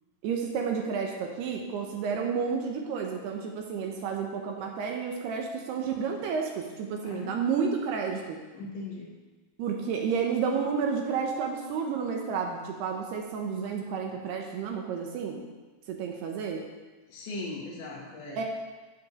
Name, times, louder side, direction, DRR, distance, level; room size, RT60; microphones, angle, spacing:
voice 1, 0.2-8.4 9.6-15.4 15.9-16.6 18.4-18.5, right 6 dB, 75° right, 2 dB, 2.6 m, -31 dB
voice 2, 7.0-7.7 8.5-9.1 17.1-18.5, left 2 dB, 65° left, -4 dB, 4.4 m, -39 dB
11.0 x 7.9 x 7.0 m, 1.3 s
omnidirectional pair, 5.6 m